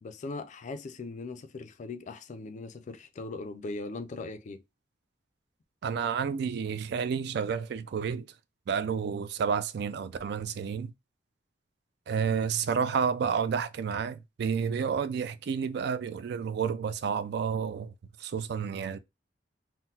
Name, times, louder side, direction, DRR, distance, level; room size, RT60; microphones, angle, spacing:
voice 1, 0.0-4.6, left 3 dB, 40° left, 0.3 m, -39 dB
voice 2, 5.8-8.3 8.7-10.9 12.1-17.9 18.2-19.0, right 6 dB, 65° right, 0.3 m, -30 dB
3.7 x 2.0 x 2.7 m
head